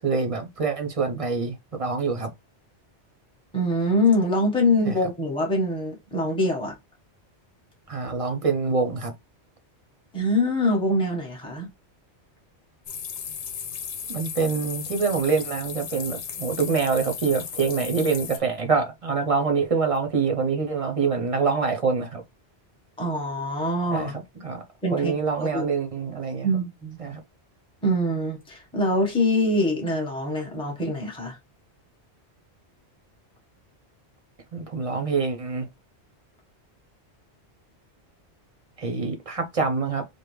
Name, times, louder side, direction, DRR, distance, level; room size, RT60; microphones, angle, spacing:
voice 1, 0.0-2.3 4.8-5.1 7.9-9.1 14.1-22.2 23.9-24.6 24.9-26.5 27.0-27.2 34.5-35.7 38.8-40.0, right 5 dB, 35° right, 0.7 m, -25 dB
voice 2, 3.5-6.7 10.1-11.7 23.0-24.1 24.8-25.1 25.4-25.6 26.4-27.0 27.8-31.4, left 1 dB, 5° left, 1.2 m, -24 dB
sound 1, 12.9-18.4, left 7 dB, 85° left, 1.0 m, -35 dB
5.0 x 2.2 x 3.1 m
omnidirectional pair, 1.1 m